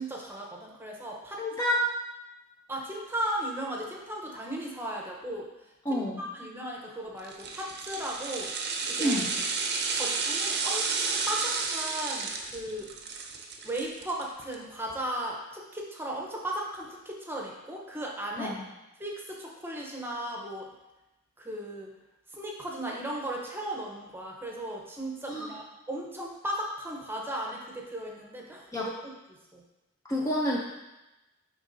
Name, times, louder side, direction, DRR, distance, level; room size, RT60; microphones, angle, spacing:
voice 1, 0.0-1.4 2.7-5.5 5.9-8.5 8.8-9.3 9.9-12.9 13.6-18.6 19.0-20.7 21.4-21.9 22.3-28.9 29.3-29.6, right 1 dB, 10° right, -1 dB, 0.8 m, -36 dB
voice 2, 1.4-1.8 5.9-6.2 9.0-9.3 18.4-18.6 25.3-25.5 28.7-28.9 30.0-30.6, left 1 dB, 15° left, -3 dB, 0.5 m, -28 dB
sound 1, 7.2-14.6 14.9-15.0, right 4 dB, 50° right, 0.6 m, -31 dB
10.0 x 3.6 x 2.6 m, 0.99 s
head